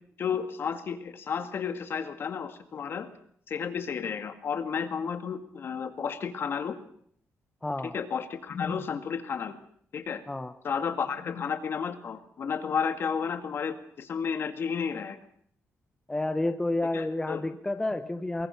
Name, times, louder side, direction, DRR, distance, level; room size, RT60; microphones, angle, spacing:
voice 1, 0.2-3.1 3.5-6.8 7.8-9.6 9.9-10.2 10.6-15.2 16.9-17.5, left 6 dB, 45° left, 8 dB, 2.1 m, -32 dB
voice 2, 7.6-7.9 10.3-10.5 16.1-18.5, left 2 dB, 10° left, 8 dB, 0.9 m, -30 dB
24.0 x 22.0 x 5.9 m, 0.64 s
wide cardioid pair, 175°, 5 cm